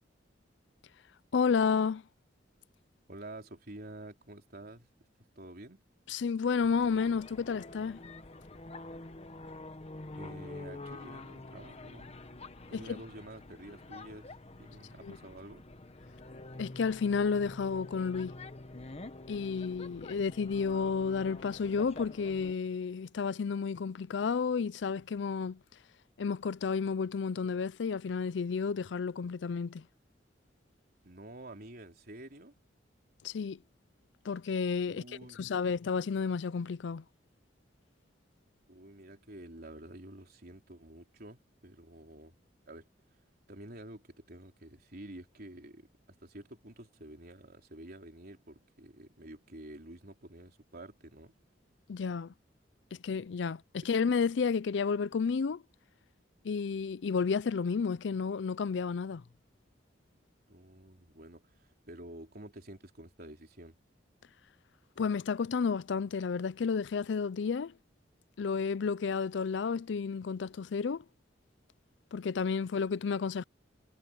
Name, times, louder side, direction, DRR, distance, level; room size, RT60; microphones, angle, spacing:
voice 1, 1.3-2.0 6.1-8.0 12.7-13.0 15.0-15.2 16.6-18.4 19.3-25.6 26.2-29.9 33.2-33.6 34.2-35.0 35.3-37.0 51.9-52.3 52.9-55.6 56.4-59.2 65.0-67.7 68.4-71.0 72.1-73.4, left 5 dB, 70° left, 0.4 m, -31 dB
voice 2, 3.1-4.9 5.4-5.8 10.1-12.1 12.7-15.6 31.0-32.5 34.8-35.7 38.7-42.4 42.7-42.9 43.5-45.9 46.2-51.3 60.5-63.8, right 1 dB, 55° right, 3.9 m, -49 dB
sound 1, 6.6-22.5, left 2 dB, 35° left, 1.2 m, -47 dB
head